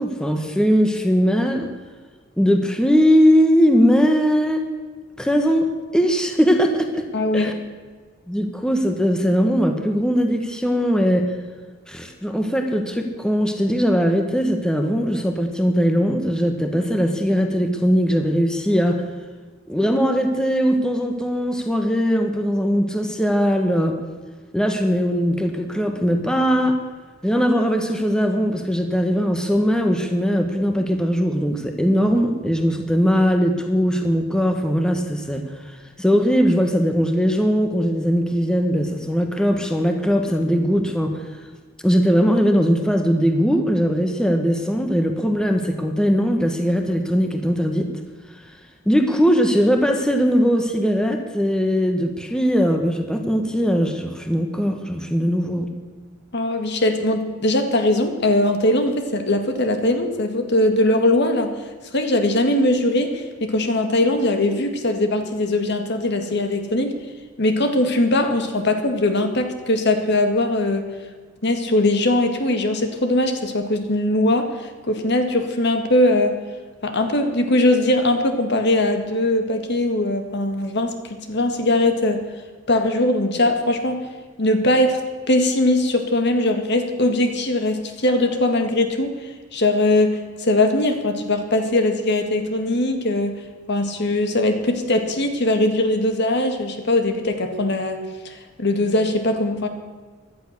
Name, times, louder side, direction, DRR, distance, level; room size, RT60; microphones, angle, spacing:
voice 1, 0.0-1.7 2.4-4.6 5.2-7.0 7.3-7.5 8.3-11.3 11.9-19.0 19.7-24.0 24.5-26.8 27.2-41.2 41.8-47.9 48.3-48.4 48.8-55.7, equal, 5° left, 5 dB, 1.3 m, -20 dB
voice 2, 7.1-7.5 56.3-61.5 61.9-67.0 67.4-70.9 71.4-76.4 76.8-82.2 82.7-84.0 84.4-85.0 85.3-93.4 93.7-99.7, left 1 dB, 60° left, 6 dB, 1.9 m, -20 dB
17.0 x 12.0 x 6.7 m, 1.4 s
head